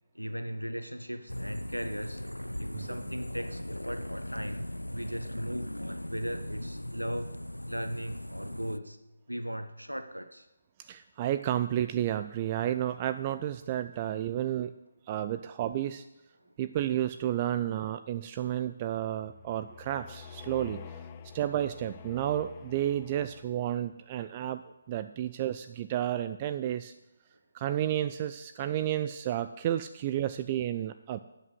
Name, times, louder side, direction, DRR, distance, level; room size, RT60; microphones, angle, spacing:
voice 1, 0.1-2.2 2.6-7.3 7.7-9.0 9.3-10.5 21.2-21.3 24.4-24.5, equal, 90° right, 9 dB, 0.9 m, -38 dB
sound 1, 1.3-8.8, left 1 dB, 85° left, 0.4 m, -38 dB
voice 2, 10.8-14.7 15.1-16.0 16.6-21.0 21.3-24.6 24.9-26.9 27.5-31.2, right 11 dB, 25° right, 11 dB, 0.4 m, -31 dB
sound 2, 19.2-23.8, left 7 dB, 25° left, 0.6 m, -47 dB
12.0 x 8.3 x 7.8 m, 0.96 s
figure-of-eight pair, 145°, 0 cm